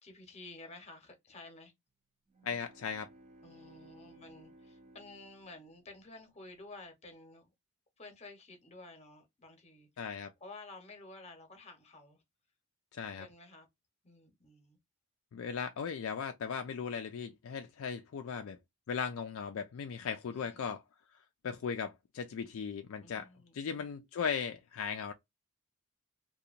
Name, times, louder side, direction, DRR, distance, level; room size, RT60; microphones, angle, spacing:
voice 1, 0.0-1.7 3.4-7.5 8.0-10.1 10.4-12.2 13.2-13.7 14.0-14.8 20.3-20.8 23.0-23.8, left 2 dB, 30° left, 0.8 m, -52 dB
sound 1, 2.3-6.3, right 1 dB, 30° right, 0.5 m, -58 dB
voice 2, 2.4-3.1 10.0-10.3 12.9-13.3 15.3-18.6 18.9-20.8 21.4-23.3 23.5-25.1, left 6 dB, 60° left, 0.3 m, -37 dB
2.8 x 2.2 x 2.4 m
head